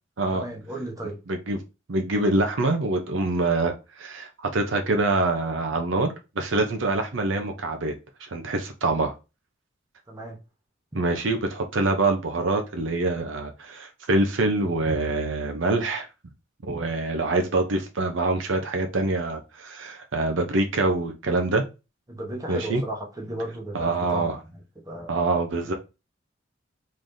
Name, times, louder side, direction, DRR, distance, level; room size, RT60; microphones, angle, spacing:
voice 1, 0.3-1.2 10.1-10.4 10.9-11.0 22.1-24.6 24.8-25.2 25.6-25.7, right 1 dB, 20° right, 0.9 m, -35 dB
voice 2, 1.3-1.6 1.9-7.9 8.2-9.1 10.9-16.1 16.6-21.6 22.5-22.8 23.7-24.4 25.1-25.7, right 2 dB, 70° right, 0.6 m, -25 dB
3.8 x 3.2 x 2.6 m
head